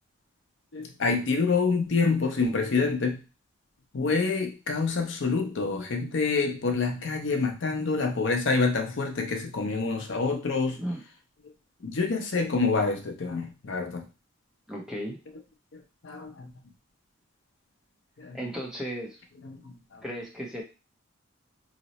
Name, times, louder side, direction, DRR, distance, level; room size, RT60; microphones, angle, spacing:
voice 1, 0.7-3.2 3.9-10.8 11.8-14.0 16.0-16.5 18.2-18.4 19.4-20.0, left 4 dB, 65° left, 4 dB, 0.6 m, -27 dB
voice 2, 14.7-15.2 18.3-19.2 20.0-20.6, equal, 5° right, -1 dB, 0.6 m, -35 dB
2.8 x 2.0 x 4.0 m, 0.30 s
head